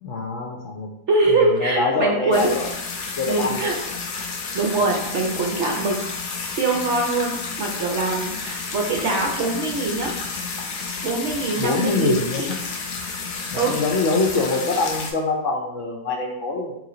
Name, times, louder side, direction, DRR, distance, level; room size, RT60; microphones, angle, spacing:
voice 1, 0.0-0.9 1.3-2.7 3.2-3.7 11.6-12.6 13.5-16.8, left 3 dB, 65° left, 0 dB, 0.8 m, -24 dB
voice 2, 1.1-2.6 3.3-3.7 4.5-6.0 6.4-10.1 11.0-12.5 13.5-13.8, right 3 dB, 65° right, 0 dB, 0.7 m, -23 dB
sound 1, 2.3-15.1, left 4 dB, 90° left, 1.2 m, -31 dB
3.3 x 3.0 x 3.7 m, 0.83 s
omnidirectional pair, 1.6 m